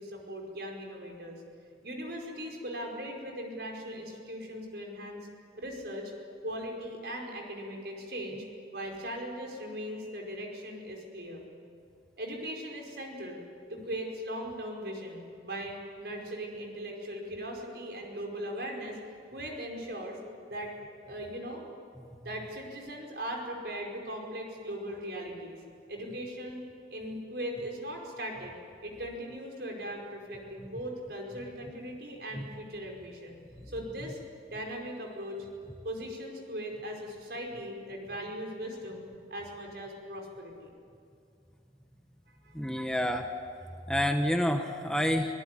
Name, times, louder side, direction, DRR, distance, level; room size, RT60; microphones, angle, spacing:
voice 1, 0.0-1.4 1.8-5.3 5.6-6.1 6.4-8.4 8.7-11.4 12.2-13.4 13.7-19.0 19.3-20.2 20.5-20.7 21.0-21.6 22.2-25.6 25.9-26.6 26.9-28.6 28.8-34.2 34.5-35.5 35.8-40.7 42.4-42.5, equal, 65° right, 1 dB, 5.1 m, -39 dB
voice 2, 42.5-43.3 43.9-45.3, equal, 5° left, 5 dB, 1.0 m, -28 dB
25.5 x 18.0 x 9.8 m, 2.4 s
head